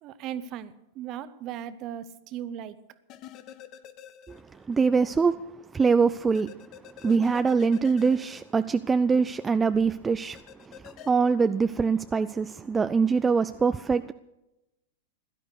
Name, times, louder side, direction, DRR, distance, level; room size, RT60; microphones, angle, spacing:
voice 1, 0.0-2.8, right 10 dB, 40° right, 1.0 m, -37 dB
sound 1, 3.1-4.8 5.1-5.2 6.3-9.2 10.3-11.1, left 10 dB, 40° left, 1.1 m, -47 dB
voice 2, 4.7-5.4 5.7-6.5 7.0-10.4 10.6-14.1, right 5 dB, 15° right, 0.4 m, -23 dB
16.5 x 12.0 x 6.6 m
figure-of-eight pair, 95°, 0 cm